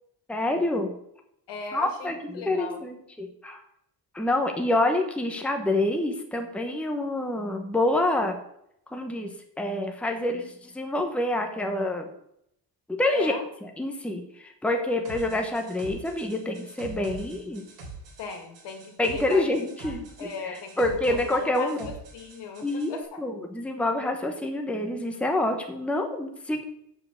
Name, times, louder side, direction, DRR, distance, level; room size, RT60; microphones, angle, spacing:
voice 1, 0.3-1.0 1.7-3.6 4.1-8.4 8.9-9.3 9.6-12.1 12.9-13.3 13.6-17.6 19.0-21.9 22.6-26.7, left 1 dB, 5° left, 3 dB, 1.0 m, -27 dB
voice 2, 1.5-2.8 13.1-13.4 18.2-19.5 19.8-23.2, left 5 dB, 75° left, 4 dB, 2.3 m, -38 dB
sound 1, 15.0-22.9, right 3 dB, 85° right, 3.7 m, -44 dB
7.6 x 7.6 x 6.4 m, 0.75 s
cardioid pair, 150°, 42 cm